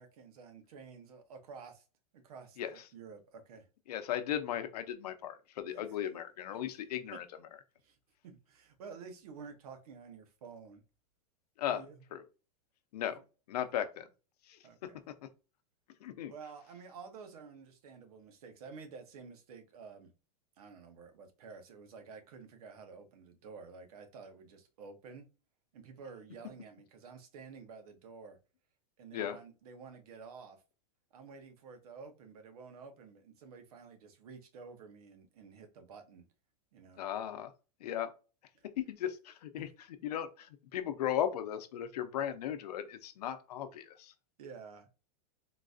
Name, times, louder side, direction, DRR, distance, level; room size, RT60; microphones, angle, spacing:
voice 1, 0.0-1.8 2.1-3.7 5.7-5.8 7.1-7.2 7.8-8.0 8.2-10.8 11.7-12.0 14.6-15.0 16.3-20.1 20.6-25.2 25.7-28.4 29.0-30.6 31.1-36.2 36.7-37.0 38.5-38.6 44.4-44.9, right 5 dB, 70° right, 0.8 m, -51 dB
voice 2, 3.9-7.2 11.6-11.8 12.1-12.2 12.9-13.2 13.5-14.1 14.5-14.9 16.0-16.3 29.1-29.4 37.0-37.5 37.8-38.1 38.8-44.1, left 10 dB, 80° left, 0.6 m, -37 dB
3.9 x 2.5 x 2.4 m
supercardioid pair, 170°, 20 cm